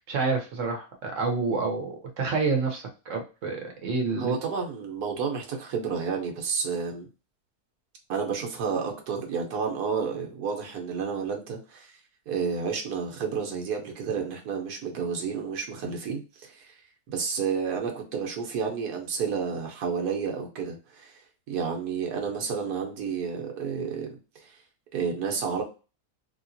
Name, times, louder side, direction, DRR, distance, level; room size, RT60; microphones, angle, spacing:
voice 1, 0.1-4.4, right 4 dB, 60° right, 3 dB, 1.1 m, -28 dB
voice 2, 4.2-7.1 8.1-11.9 12.3-16.8 17.1-21.2 21.5-24.6 24.9-25.6, right 6 dB, 85° right, 2 dB, 1.4 m, -31 dB
3.5 x 2.9 x 2.6 m, 0.32 s
omnidirectional pair, 1.6 m